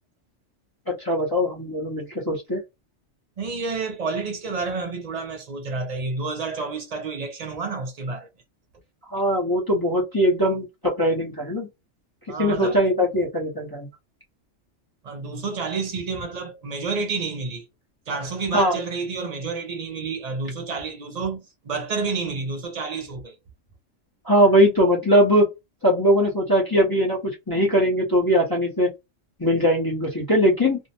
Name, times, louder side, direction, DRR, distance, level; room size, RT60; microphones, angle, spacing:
voice 1, 0.9-2.6 9.1-11.7 12.4-13.9 18.5-18.8 24.3-25.5 25.8-28.9 29.4-30.8, equal, 20° left, 0.7 m, -20 dB
voice 2, 3.4-8.3 12.3-12.8 15.0-17.7 18.1-23.4, right 4 dB, 50° right, 0.4 m, -29 dB
2.6 x 2.1 x 2.7 m
omnidirectional pair, 1.3 m